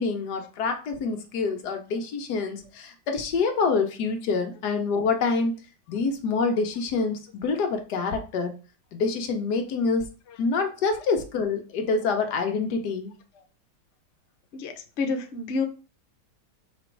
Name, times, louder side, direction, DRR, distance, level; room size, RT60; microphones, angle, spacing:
voice 1, 0.0-5.5 5.9-8.5 8.9-10.1 10.4-13.1, left 4 dB, 65° left, 4 dB, 1.2 m, -26 dB
voice 2, 14.5-15.6, left 4 dB, 80° left, 5 dB, 0.6 m, -29 dB
5.0 x 2.4 x 4.5 m, 0.35 s
omnidirectional pair, 2.2 m